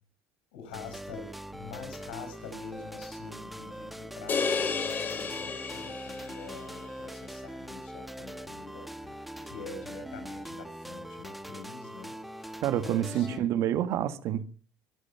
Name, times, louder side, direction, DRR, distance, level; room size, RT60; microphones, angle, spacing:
voice 1, 0.5-13.5, left 5 dB, 90° left, 5.8 m, -46 dB
sound 1, 0.7-13.4, equal, ahead, 1.2 m, -42 dB
sound 2, 4.3-6.6, left 5 dB, 35° left, 2.6 m, -32 dB
voice 2, 12.6-14.4, right 11 dB, 65° right, 1.7 m, -28 dB
23.5 x 8.5 x 5.8 m
supercardioid pair, 90°, 5 cm